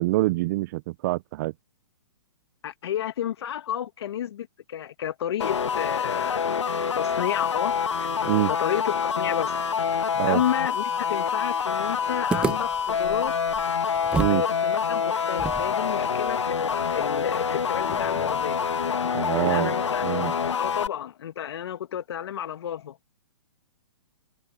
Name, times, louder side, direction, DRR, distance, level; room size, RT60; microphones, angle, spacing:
voice 1, 0.0-1.5 8.2-8.5 10.1-10.4 14.1-14.4 19.1-19.7 20.0-20.3, right 18 dB, 40° right, 0.8 m, -25 dB
voice 2, 2.6-6.5 7.0-9.5 10.2-13.4 14.3-18.6 19.3-20.0 20.6-23.0, left 10 dB, 65° left, 2.3 m, -31 dB
sound 1, 5.4-20.9, left 6 dB, 85° left, 1.5 m, -26 dB
sound 2, 12.3-14.5 14.7-14.8 15.4-18.5, right 5 dB, 5° right, 0.4 m, -33 dB
hypercardioid pair, 140°, 15 cm